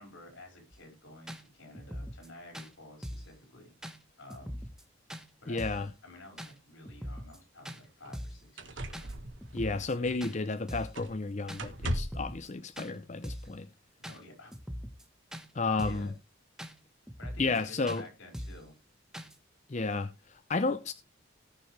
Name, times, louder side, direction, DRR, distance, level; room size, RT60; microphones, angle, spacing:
voice 1, 0.0-3.7 4.2-4.6 5.4-5.6 6.0-9.1 13.4-13.5 14.0-14.5 15.8-16.1 17.2-18.8, left 1 dB, 85° left, 5.3 m, -51 dB
sound 1, 0.7-0.8 1.3-1.4 1.7-2.3 2.5-2.7 3.0-3.3 3.8-4.0 4.3-4.8 5.1-5.2 5.6-5.9 6.4-6.5 6.9-7.4 7.7-7.8 8.1-8.4 8.9-9.1 9.4-9.9 10.2-10.4 10.7-11.0 11.5-11.6 12.0-12.5 12.8-12.9 13.2-13.5 14.0-14.2 14.5-15.0 15.3-15.5 15.8-16.1 16.6-16.7 17.1-17.6 17.9-18.0 18.3-18.7 19.1-19.4, equal, 5° right, 1.1 m, -41 dB
voice 2, 5.5-5.9 9.5-13.7 15.5-16.1 17.4-18.0 19.7-20.9, left 3 dB, 35° left, 0.6 m, -32 dB
sound 2, 7.3-7.4 8.0-8.2 8.6-10.5 10.9-11.3 11.6-12.3 13.5-13.6, equal, 70° right, 1.7 m, -38 dB
18.5 x 6.5 x 3.3 m
head